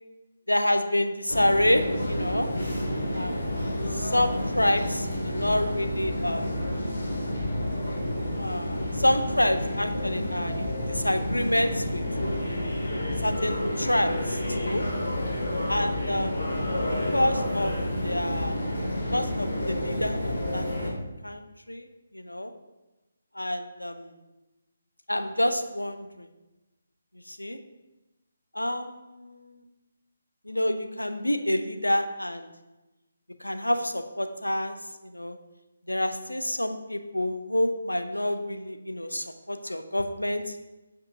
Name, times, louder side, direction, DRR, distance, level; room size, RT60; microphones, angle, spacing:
voice 1, 0.5-2.5 3.1-6.5 8.4-12.5 13.2-14.9 15.7-16.8 17.1-17.8 18.0-18.6 19.1-21.0 21.2-21.9 22.1-22.5 23.3-24.2 25.1-26.3 27.3-27.6 28.5-29.6 30.4-32.5 33.4-34.8 35.0-35.4 35.9-40.6, left 1 dB, 90° left, 8 dB, 0.7 m, -28 dB
sound 1, 1.3-20.9, left 1 dB, 60° left, 2.6 m, -29 dB
10.5 x 5.4 x 2.8 m, 1.1 s
figure-of-eight pair, 145°, 0 cm